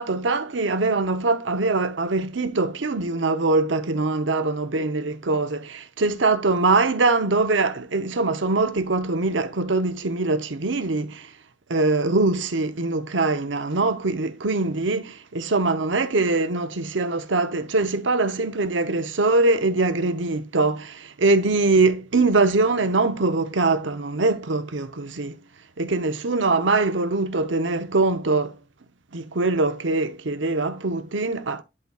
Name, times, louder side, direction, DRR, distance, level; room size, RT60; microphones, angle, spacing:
voice 1, 0.0-11.3 11.7-25.4 25.8-28.6 29.1-31.6, right 3 dB, 85° right, 0.9 m, -23 dB
11.0 x 4.0 x 2.4 m
head